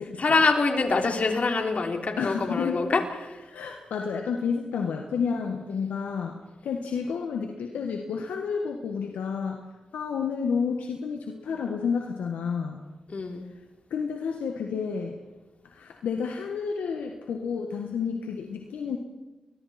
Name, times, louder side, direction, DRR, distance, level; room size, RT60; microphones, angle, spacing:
voice 1, 0.2-3.4 13.1-13.4, left 3 dB, 60° left, 3 dB, 3.4 m, -25 dB
voice 2, 2.2-2.8 3.5-6.4 6.6-9.6 9.9-12.8 13.9-15.2 15.7-19.0, left 6 dB, 90° left, 3 dB, 1.5 m, -30 dB
29.5 x 22.0 x 4.4 m, 1.1 s
supercardioid pair, 40°, 3 cm